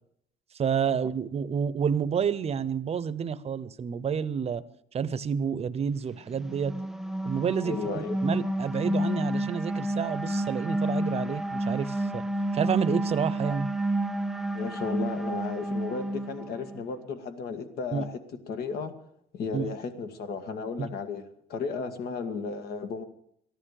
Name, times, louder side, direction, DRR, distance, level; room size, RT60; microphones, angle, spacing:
voice 1, 0.5-4.6 4.9-6.7 7.2-12.2 12.5-13.7 17.9-18.0 19.5-19.7 20.8-20.9, right 7 dB, 35° right, 15 dB, 0.8 m, -29 dB
sound 1, 6.3-16.8, right 1 dB, 5° right, 0.5 m, -30 dB
voice 2, 7.6-8.2 14.5-18.2 18.5-18.9 19.3-23.1, left 5 dB, 65° left, 8 dB, 1.8 m, -34 dB
14.5 x 11.5 x 6.6 m, 0.68 s
cardioid pair, 110°, 17 cm